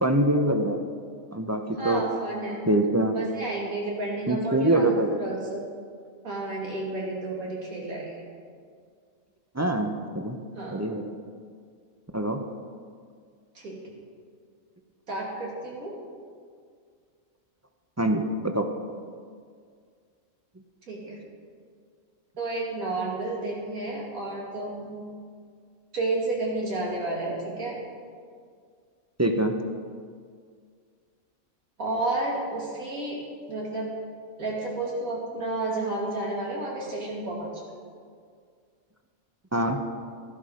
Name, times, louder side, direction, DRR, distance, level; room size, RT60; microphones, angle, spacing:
voice 1, 0.0-0.8 1.3-2.0 2.6-3.1 4.3-5.2 9.5-10.4 10.7-11.1 12.1-12.4 18.0-18.7 29.2-29.6 39.5-39.8, right 1 dB, 25° right, 4 dB, 0.4 m, -24 dB
voice 2, 1.8-2.6 3.1-4.9 5.2-5.6 6.2-8.1 10.5-10.8 13.5-13.8 15.1-15.9 20.9-21.2 22.4-25.0 25.9-27.8 31.8-33.2 33.5-33.9 34.4-37.5, right 2 dB, 75° right, -3 dB, 2.9 m, -31 dB
12.5 x 12.0 x 5.0 m, 2.1 s
omnidirectional pair, 1.5 m